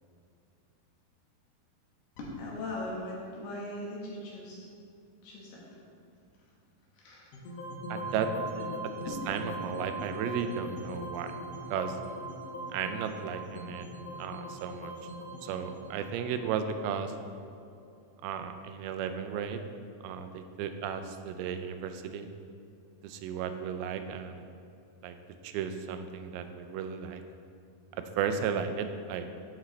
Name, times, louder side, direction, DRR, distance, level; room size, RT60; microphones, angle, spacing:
voice 1, 2.2-4.7 5.2-5.6 6.9-7.3 8.3-8.5 9.1-9.2, left 1 dB, 90° left, -4 dB, 3.5 m, -39 dB
sound 1, 7.3-17.5, right 1 dB, 70° left, 1.6 m, -40 dB
voice 2, 7.9-8.3 9.3-11.3 11.7-12.0 12.7-13.9 14.2-14.9 15.4-17.1 18.2-19.6 20.0-22.3 23.0-24.6 25.0-25.2 25.4-27.2 28.0-29.3, right 7 dB, 85° right, 8 dB, 2.5 m, -34 dB
11.5 x 5.1 x 3.2 m, 2.5 s
omnidirectional pair, 4.4 m